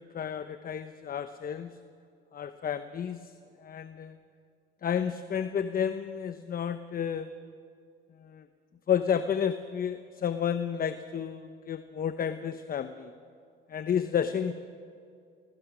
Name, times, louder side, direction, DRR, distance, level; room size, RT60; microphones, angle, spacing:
voice 1, 0.0-1.7 2.3-3.3 3.6-4.2 4.8-7.3 8.2-8.5 8.9-13.1 13.7-14.5, left 8 dB, 45° left, 10 dB, 0.9 m, -31 dB
25.0 x 19.0 x 6.2 m, 2.4 s
cardioid pair, 90°, 20 cm